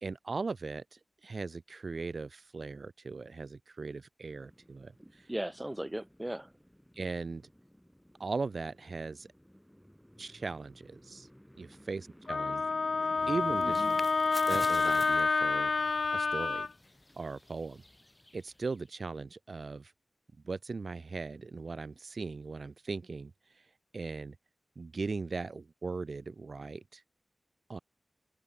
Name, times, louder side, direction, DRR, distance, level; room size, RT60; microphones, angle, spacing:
voice 1, 0.0-5.3 6.9-7.4 8.2-9.3 10.2-11.3 11.6-12.6 13.3-13.9 14.5-15.7 16.1-16.7 17.2-17.8 18.3-19.9 20.4-23.7 23.9-24.4 24.8-27.0 27.7-27.8, right 4 dB, 65° right, 0.5 m, -38 dB
sound 1, 4.3-14.1, equal, 5° left, 1.8 m, -56 dB
voice 2, 5.0-6.5 13.0-13.1 13.6-13.9, right 1 dB, 15° right, 1.5 m, -38 dB
Wind instrument woodwind instrument, 12.3-16.7, left 4 dB, 70° left, 0.5 m, -28 dB
sound 2, 13.1-18.9, left 1 dB, 20° left, 1.7 m, -49 dB
open air
cardioid pair, 45°, 0 cm